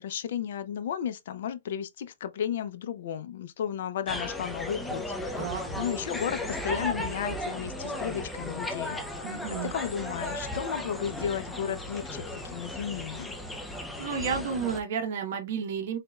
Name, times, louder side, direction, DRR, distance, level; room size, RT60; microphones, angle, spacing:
voice 1, 0.0-9.0 9.6-13.3, left 9 dB, 55° left, 0.5 m, -34 dB
sound 1, 4.1-14.8, left 1 dB, 5° left, 0.6 m, -35 dB
voice 2, 9.2-9.7 14.0-16.0, right 6 dB, 50° right, 1.1 m, -31 dB
4.0 x 3.4 x 2.3 m
hypercardioid pair, 160°, 0 cm